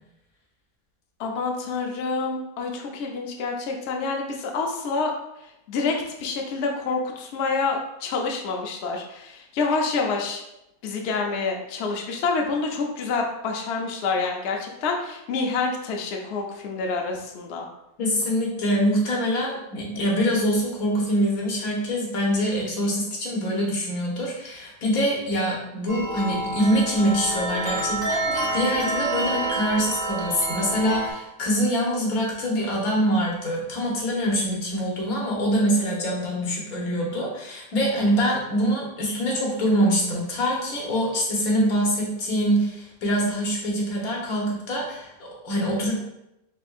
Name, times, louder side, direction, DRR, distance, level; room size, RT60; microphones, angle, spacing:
voice 1, 1.2-5.1 5.7-10.4 10.8-17.6, left 4 dB, 60° left, 1 dB, 0.7 m, -27 dB
voice 2, 18.0-46.0, equal, 80° left, -3 dB, 1.5 m, -24 dB
sound 1, 25.9-31.1, right 2 dB, 20° right, 0.9 m, -28 dB
4.3 x 3.5 x 2.3 m, 0.85 s
omnidirectional pair, 1.5 m